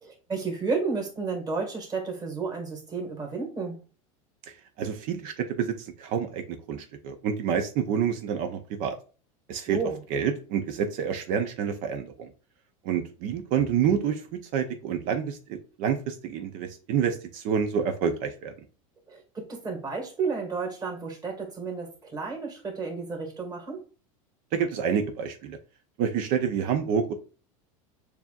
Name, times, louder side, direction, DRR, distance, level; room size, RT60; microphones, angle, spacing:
voice 1, 0.0-3.8 9.7-10.0 19.1-23.8, right 4 dB, 20° right, 0 dB, 1.8 m, -32 dB
voice 2, 4.5-9.0 9.5-9.8 10.1-12.3 12.8-18.5 24.5-25.6 26.0-27.1, right 7 dB, 50° right, 7 dB, 0.7 m, -28 dB
6.7 x 2.9 x 2.4 m, 0.37 s
supercardioid pair, 135°, 18 cm